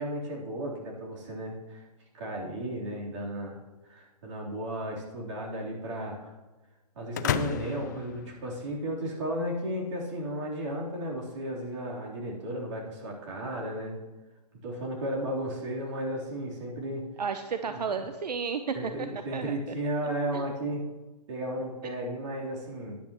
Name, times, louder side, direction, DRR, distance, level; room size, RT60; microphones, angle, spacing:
voice 1, 0.0-1.8 2.1-3.6 3.8-6.3 6.9-14.0 14.6-17.0 17.7-18.0 18.7-20.9 21.3-23.0, right 1 dB, 45° right, -3 dB, 3.6 m, -34 dB
sound 1, 7.1-9.1, left 9 dB, 30° left, 0.3 m, -33 dB
voice 2, 17.2-19.1 19.3-19.6 20.3-20.4, right 6 dB, 85° right, 8 dB, 0.8 m, -32 dB
14.0 x 10.5 x 3.1 m, 1.2 s
hypercardioid pair, 150°, 20 cm